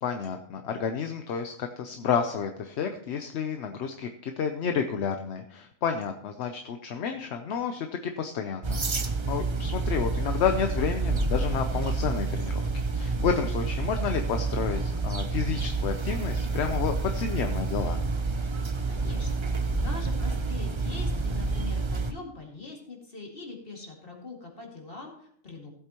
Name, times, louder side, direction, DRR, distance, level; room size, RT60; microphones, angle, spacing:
voice 1, 0.0-12.7 12.9-18.0, left 6 dB, 60° left, 6 dB, 0.9 m, -30 dB
sound 1, 8.6-22.1, right 3 dB, 30° right, 0.5 m, -29 dB
voice 2, 18.9-19.5 19.8-25.7, left 3 dB, 45° left, 0 dB, 2.4 m, -42 dB
15.5 x 8.1 x 3.0 m, 0.65 s
omnidirectional pair, 1.4 m